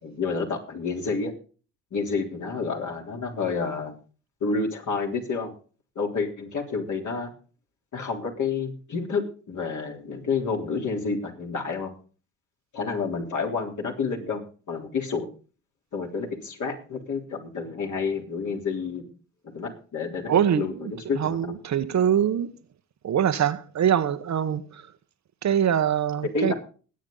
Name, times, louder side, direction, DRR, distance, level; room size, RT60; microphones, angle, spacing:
voice 1, 0.0-1.3 1.9-3.9 4.4-5.5 6.0-7.3 7.9-11.9 12.7-14.4 14.7-15.3 15.9-19.1 19.5-20.7 21.1-21.5 26.3-26.5, left 4 dB, 50° left, 3.7 m, -29 dB
voice 2, 20.3-20.9 21.2-22.5 23.0-24.8 25.4-26.5, right 9 dB, 45° right, 1.1 m, -23 dB
20.5 x 8.6 x 3.9 m
hypercardioid pair, 65°, 38 cm